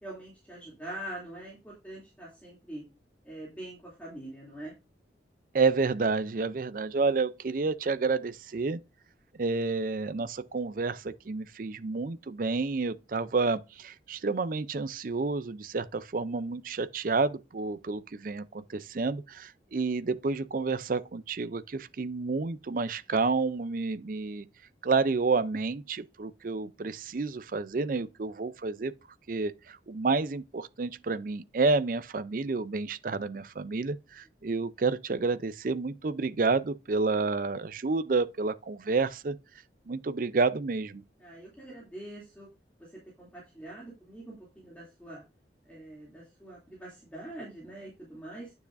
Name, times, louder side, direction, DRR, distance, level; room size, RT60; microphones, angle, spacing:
voice 1, 0.0-2.8 3.2-4.7 41.2-42.5 42.8-45.2 45.7-48.5, right 1 dB, 10° left, 2.7 m, -44 dB
voice 2, 5.5-8.8 9.4-24.5 24.8-28.9 29.3-39.4 39.9-41.0, right 4 dB, 50° right, 0.5 m, -30 dB
9.5 x 6.9 x 2.6 m
head